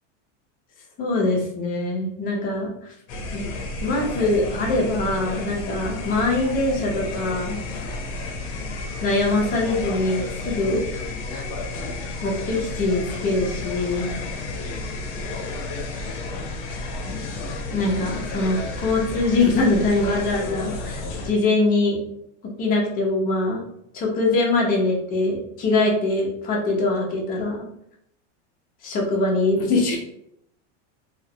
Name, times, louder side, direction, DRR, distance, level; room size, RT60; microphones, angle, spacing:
voice 1, 1.0-2.7 3.3-3.5 3.8-7.6 9.0-11.4 12.2-14.1 17.7-22.0 22.6-23.6 23.9-27.7 28.8-30.0, left 2 dB, 25° left, -1 dB, 0.5 m, -23 dB
sound 1, 3.1-21.3, left 2 dB, 65° left, 0.6 m, -32 dB
2.3 x 2.0 x 2.6 m, 0.75 s
supercardioid pair, 140°, 37 cm